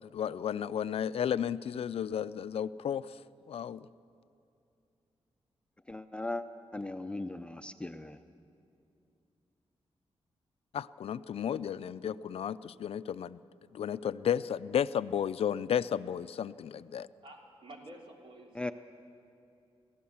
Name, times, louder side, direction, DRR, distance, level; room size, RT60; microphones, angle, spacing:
voice 1, 0.0-3.1 3.5-3.8 10.7-13.4 13.7-17.1, left 9 dB, 70° left, 15 dB, 0.4 m, -33 dB
voice 2, 5.9-6.4 6.7-8.2 18.5-18.7, left 2 dB, 10° left, 8 dB, 0.5 m, -38 dB
voice 3, 17.2-18.7, right 1 dB, 60° right, 0 dB, 3.0 m, -50 dB
24.5 x 16.0 x 7.2 m, 2.6 s
wide cardioid pair, 145°, 11 cm